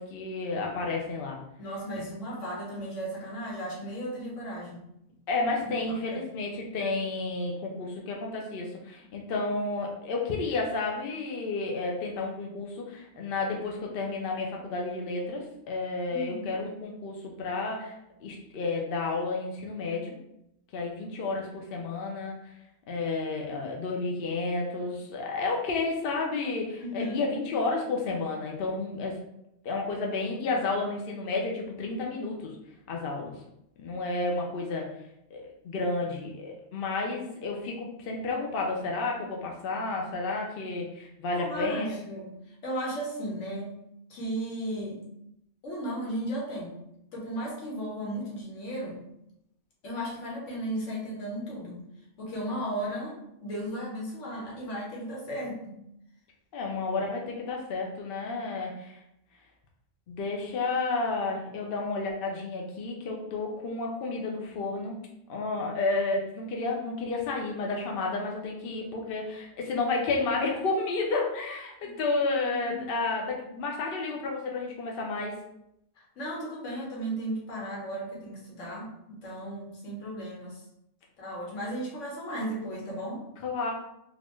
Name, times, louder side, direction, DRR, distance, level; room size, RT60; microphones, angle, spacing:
voice 1, 0.0-1.4 5.3-17.9 18.2-20.2 20.7-22.5 22.9-29.2 29.6-32.5 32.9-33.3 33.8-34.9 35.3-42.0 56.5-59.0 60.1-65.0 65.3-75.3 83.4-83.7, left 3 dB, 60° left, 0 dB, 0.7 m, -31 dB
voice 2, 1.6-4.8 5.6-5.7 6.1-6.2 13.2-13.3 16.1-16.6 26.8-27.1 41.3-43.8 44.1-45.0 45.6-46.8 47.1-49.0 49.8-51.8 52.2-55.7 71.8-71.9 72.3-72.9 76.0-80.6 81.2-83.2, right 1 dB, 85° left, -4 dB, 1.4 m, -35 dB
3.9 x 2.4 x 3.0 m, 0.80 s
omnidirectional pair, 1.2 m